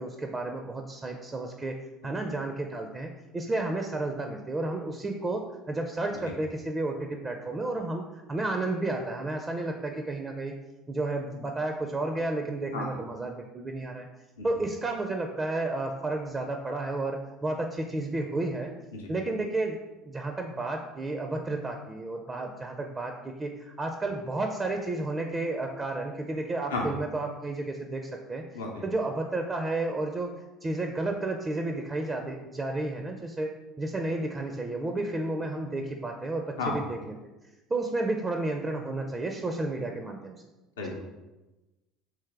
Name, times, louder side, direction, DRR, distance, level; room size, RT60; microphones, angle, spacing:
voice 1, 0.0-1.8 2.0-10.5 10.9-14.1 14.4-18.7 19.1-19.8 20.0-37.1 37.7-40.4 40.8-40.9, right 2 dB, 25° right, 3 dB, 0.4 m, -32 dB
voice 2, 12.7-12.9 18.9-19.1 26.7-26.8 28.5-28.7 36.6-36.8 40.8-41.0, left 3 dB, 80° left, -1 dB, 0.6 m, -31 dB
3.3 x 3.2 x 3.3 m, 1.1 s
hypercardioid pair, 70°, 0 cm